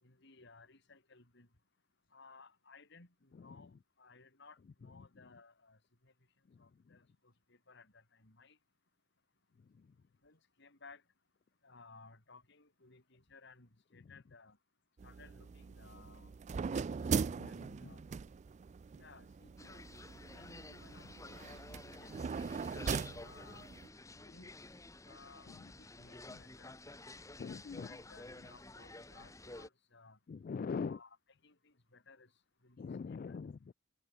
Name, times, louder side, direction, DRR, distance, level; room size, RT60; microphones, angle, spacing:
voice 1, 0.0-1.5 2.1-5.8 6.0-6.1 6.6-7.0 7.5-8.6 10.2-11.0 11.6-14.6 15.0-16.4 16.6-18.0 18.9-19.8 20.3-21.6 22.0-22.6 23.2-23.7 24.3-24.5 25.1-26.7 27.8-30.2 30.7-31.2 31.4-32.3 32.6-33.4, left 4 dB, 60° left, 3.9 m, -60 dB
sound 1, 15.0-23.9, right 5 dB, 35° right, 0.3 m, -40 dB
sound 2, 19.6-29.7, left 2 dB, 15° left, 1.5 m, -52 dB
voice 2, 27.4-28.0 30.3-31.0 32.8-33.7, left 5 dB, 45° left, 0.3 m, -42 dB
head